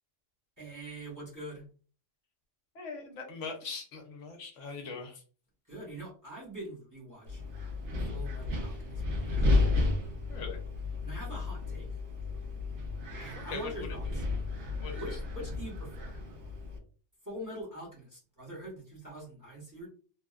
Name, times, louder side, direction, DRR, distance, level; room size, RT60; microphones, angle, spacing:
voice 1, 0.6-1.6 5.7-7.5 8.1-9.6 11.0-11.9 13.2-14.3 15.0-16.2 17.2-19.9, right 1 dB, 15° right, -4 dB, 1.0 m, -44 dB
voice 2, 2.7-5.2 10.3-10.6 13.4-13.9 14.8-15.1, left 4 dB, 75° left, 2 dB, 1.0 m, -41 dB
Wind, 7.3-16.8, left 2 dB, 70° right, 1.0 m, -32 dB
3.1 x 2.2 x 2.3 m, 0.40 s
omnidirectional pair, 1.3 m